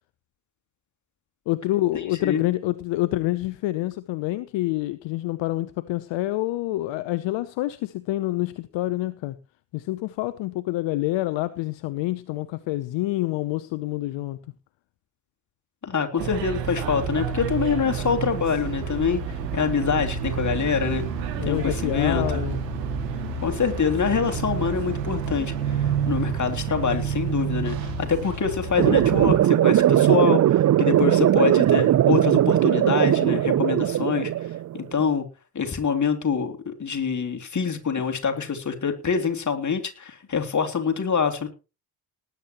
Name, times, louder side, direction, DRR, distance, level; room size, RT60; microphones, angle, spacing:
voice 1, 1.5-9.3 9.7-14.4 21.4-22.6, left 17 dB, 65° left, 0.9 m, -27 dB
voice 2, 15.8-19.2 19.5-21.0 21.4-22.4 23.4-34.3 34.7-35.2 35.5-41.5, left 6 dB, 35° left, 3.0 m, -25 dB
sound 1, 16.2-29.4, right 6 dB, 85° right, 2.4 m, -29 dB
sound 2, 28.8-34.8, right 12 dB, 35° right, 0.6 m, -19 dB
19.0 x 10.5 x 3.1 m
hypercardioid pair, 45°, 48 cm